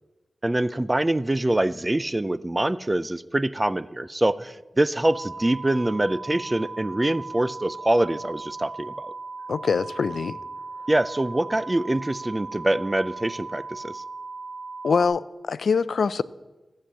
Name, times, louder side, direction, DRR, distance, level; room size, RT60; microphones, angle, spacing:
voice 1, 0.4-9.1 10.9-14.0, right 1 dB, 20° right, 0.4 m, -24 dB
sound 1, 5.1-15.1, right 3 dB, 40° right, 1.4 m, -38 dB
voice 2, 9.5-10.4 14.8-16.2, left 5 dB, 75° left, 0.4 m, -24 dB
14.0 x 8.4 x 7.5 m
wide cardioid pair, 105°, 0 cm